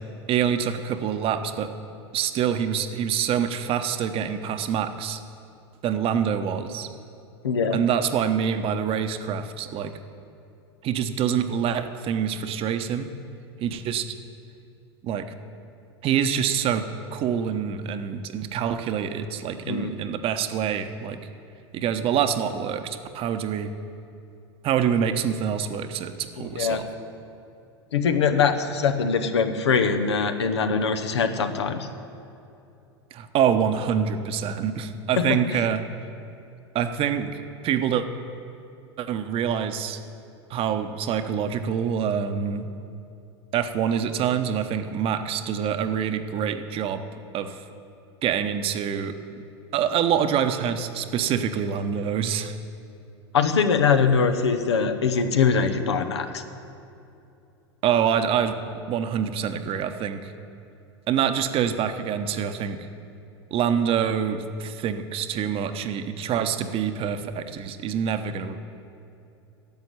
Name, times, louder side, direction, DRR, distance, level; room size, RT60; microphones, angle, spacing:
voice 1, 0.3-1.7 2.1-5.2 5.8-6.9 7.7-9.9 10.8-13.1 13.6-14.1 15.0-15.3 16.0-16.8 17.1-21.2 21.7-23.7 24.6-26.9 33.1-35.8 36.7-37.4 37.6-38.1 39.0-40.0 40.5-42.7 43.5-47.0 47.3-47.6 48.2-49.2 49.7-52.6 57.8-58.6 58.9-60.3 61.1-62.9 63.5-68.6, right 8 dB, 40° right, 9 dB, 0.9 m, -26 dB
voice 2, 7.4-7.8 19.7-19.9 26.6-26.8 27.9-31.9 35.2-35.3 35.5-35.6 53.3-56.4, left 6 dB, 80° left, 8 dB, 1.0 m, -22 dB
10.5 x 7.6 x 9.7 m, 2.7 s
hypercardioid pair, 90°, 14 cm